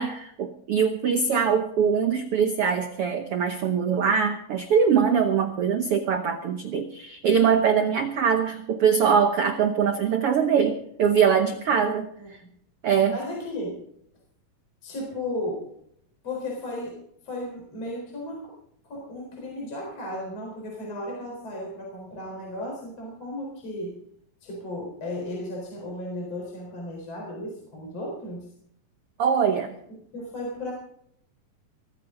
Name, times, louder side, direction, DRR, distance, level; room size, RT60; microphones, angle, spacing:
voice 1, 0.0-12.4 12.8-13.2 29.2-29.7, right 7 dB, 80° right, 7 dB, 1.3 m, -23 dB
voice 2, 12.2-12.5 13.1-13.8 14.8-15.6 16.2-17.0 17.2-18.6 18.8-24.0 24.4-28.5 30.1-30.7, left 1 dB, 45° left, -2 dB, 5.2 m, -35 dB
21.0 x 14.5 x 3.9 m, 0.71 s
omnidirectional pair, 4.2 m